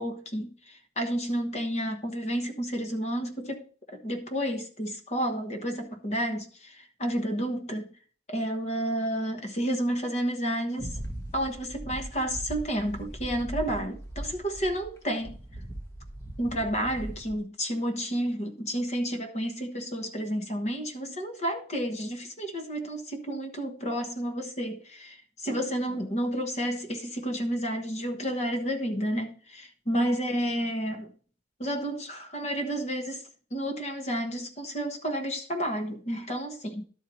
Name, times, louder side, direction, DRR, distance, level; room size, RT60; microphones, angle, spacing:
voice 1, 0.0-7.9 8.3-11.0 11.3-15.4 16.4-31.1 31.6-33.2 33.5-36.8, equal, 40° left, 1.2 m, -31 dB
sound 1, 10.8-15.0 15.2-17.4, right 1 dB, 15° left, 0.9 m, -39 dB
12.0 x 4.5 x 4.0 m
head